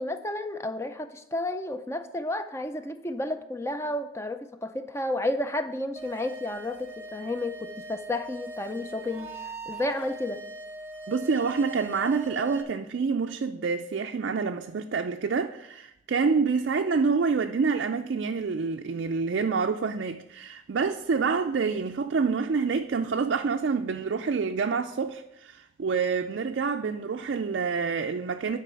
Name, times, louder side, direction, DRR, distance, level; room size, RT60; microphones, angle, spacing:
voice 1, 0.0-9.3 9.7-10.4, left 1 dB, 15° left, 0.5 m, -31 dB
sound 1, 6.0-12.6, right 2 dB, 10° right, 0.9 m, -41 dB
voice 2, 11.1-28.6, right 5 dB, 55° right, 0.4 m, -27 dB
9.9 x 4.7 x 6.2 m
head